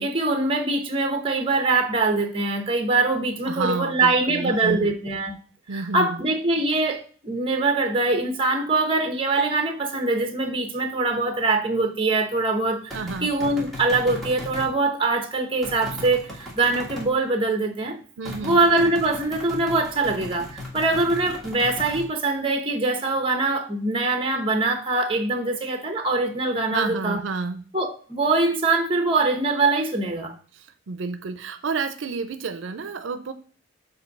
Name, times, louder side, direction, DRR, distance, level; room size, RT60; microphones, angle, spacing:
voice 1, 0.0-5.3 5.7-18.0 18.4-27.2 27.7-30.3, right 3 dB, 25° right, 1.0 m, -23 dB
voice 2, 3.4-4.9 5.7-6.2 12.9-13.3 18.2-18.6 26.7-27.6 30.5-33.3, right 4 dB, 80° right, 0.5 m, -30 dB
sound 1, 12.9-14.7 15.6-17.1 18.3-22.1, left 1 dB, ahead, 1.5 m, -37 dB
7.4 x 2.7 x 5.3 m
head